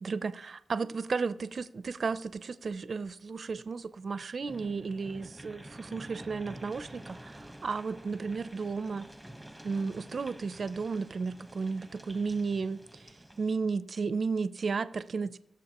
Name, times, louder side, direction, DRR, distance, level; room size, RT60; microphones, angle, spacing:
voice 1, 0.0-9.1 9.6-13.0 13.4-15.4, right 4 dB, 65° right, 0.5 m, -33 dB
sound 1, 4.4-13.6, right 1 dB, 5° right, 1.1 m, -49 dB
21.0 x 7.0 x 2.9 m
cardioid pair, 60°, 0 cm